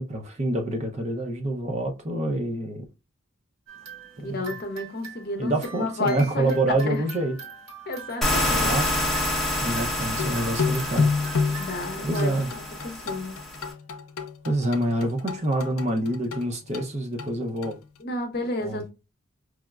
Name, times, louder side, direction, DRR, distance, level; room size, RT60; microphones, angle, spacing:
voice 1, 0.0-2.9 4.2-4.4 5.4-7.4 8.5-9.0 9.6-11.6 12.0-12.5 14.4-17.8 18.6-18.9, right 1 dB, 30° right, 0.5 m, -27 dB
sound 1, 3.7-13.7, right 4 dB, 80° right, 1.3 m, -44 dB
voice 2, 4.2-7.0 7.9-8.8 11.5-13.4 18.0-18.9, left 2 dB, 45° left, 0.7 m, -31 dB
sound 2, 8.2-13.7, left 1 dB, ahead, 0.7 m, -28 dB
sound 3, 10.2-17.7, left 4 dB, 85° left, 0.5 m, -29 dB
4.8 x 2.1 x 2.3 m
head